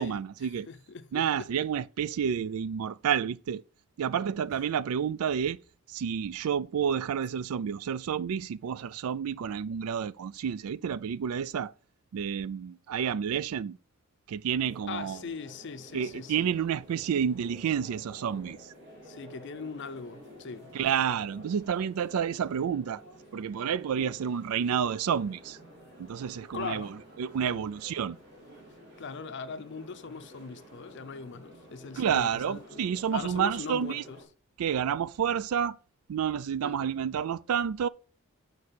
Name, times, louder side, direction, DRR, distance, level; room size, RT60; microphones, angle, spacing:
voice 1, 0.0-0.7 1.1-3.6 4.0-5.6 5.9-11.7 12.1-13.8 14.3-15.2 15.9-18.7 20.7-23.0 23.3-25.6 26.0-26.9 27.2-28.2 31.9-34.0 34.6-35.8 36.1-37.9, right 8 dB, 80° right, 0.4 m, -30 dB
voice 2, 0.7-1.5 14.9-16.5 19.0-20.7 24.0-24.1 26.5-27.0 27.4-27.7 29.0-32.9 33.1-34.2 36.6-36.8, left 5 dB, 55° left, 0.5 m, -40 dB
sound 1, 14.6-34.2, right 1 dB, 50° right, 3.1 m, -51 dB
6.7 x 4.7 x 4.3 m
head